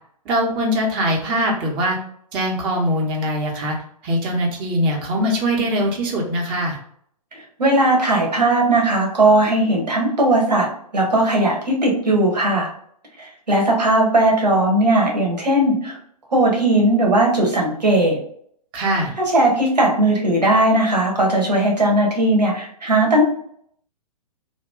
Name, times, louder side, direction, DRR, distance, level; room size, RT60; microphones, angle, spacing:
voice 1, 0.3-2.0 2.3-3.7 4.0-6.8 18.7-19.1, equal, 25° right, -1 dB, 0.8 m, -22 dB
voice 2, 7.6-10.7 10.9-12.7 13.2-16.0 16.3-18.2 19.2-23.2, right 1 dB, 85° right, -1 dB, 1.2 m, -18 dB
2.9 x 2.2 x 3.5 m, 0.65 s
figure-of-eight pair, 120°, 21 cm